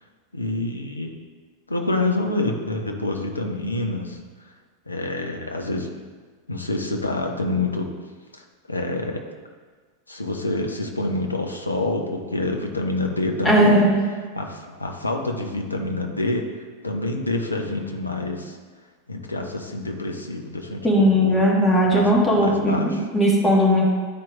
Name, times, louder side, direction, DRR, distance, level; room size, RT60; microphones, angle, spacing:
voice 1, 0.3-1.1 1.7-4.2 4.9-5.9 6.5-7.9 8.3-9.3 10.1-13.8 14.1-18.6 19.1-21.4 21.8-23.1, left 2 dB, 80° left, 3 dB, 0.7 m, -27 dB
voice 2, 13.4-14.0 20.8-23.9, equal, 15° left, -4 dB, 1.5 m, -18 dB
10.0 x 4.4 x 2.4 m, 1.5 s
figure-of-eight pair, 90°, 0 cm